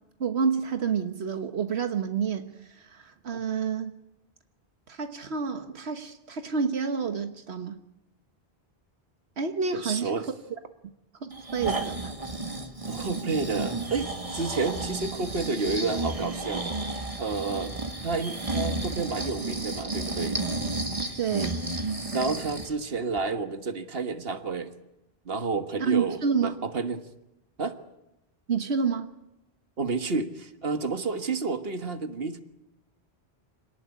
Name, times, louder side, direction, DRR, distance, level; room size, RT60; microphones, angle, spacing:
voice 1, 0.2-3.9 4.9-7.8 9.4-10.1 11.2-12.1 21.1-21.6 25.8-26.6 28.5-29.1, right 6 dB, 85° right, 7 dB, 1.5 m, -29 dB
voice 2, 9.7-10.3 12.9-17.7 18.0-20.4 22.1-24.7 25.2-27.0 27.6-27.8 29.8-32.4, right 4 dB, 65° right, 8 dB, 1.8 m, -30 dB
Breathing, 11.3-22.7 23.2-23.3, right 2 dB, 30° right, 2.1 m, -32 dB
26.5 x 18.5 x 9.7 m, 0.91 s
omnidirectional pair, 1.1 m